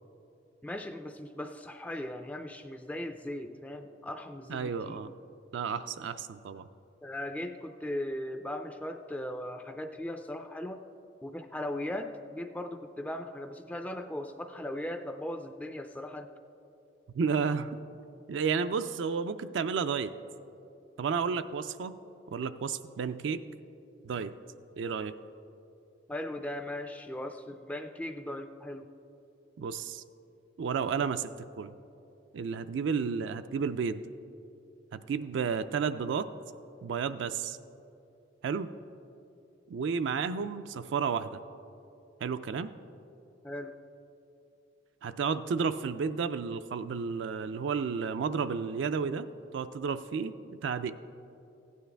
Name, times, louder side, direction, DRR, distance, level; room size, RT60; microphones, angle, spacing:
voice 1, 0.6-5.0 7.0-10.8 11.2-16.3 26.1-28.9 43.4-43.8, left 1 dB, 10° left, 7 dB, 0.3 m, -38 dB
voice 2, 4.5-5.1 5.5-6.7 17.1-17.8 18.3-20.1 21.0-22.0 22.3-23.4 24.0-24.3 24.8-25.1 29.6-30.0 30.6-31.3 31.6-31.7 32.3-34.0 34.9-36.3 36.8-37.6 38.4-38.7 39.7-41.4 42.2-42.7 45.0-50.9, right 6 dB, 75° right, 10 dB, 0.3 m, -32 dB
15.5 x 9.3 x 3.3 m, 2.8 s
head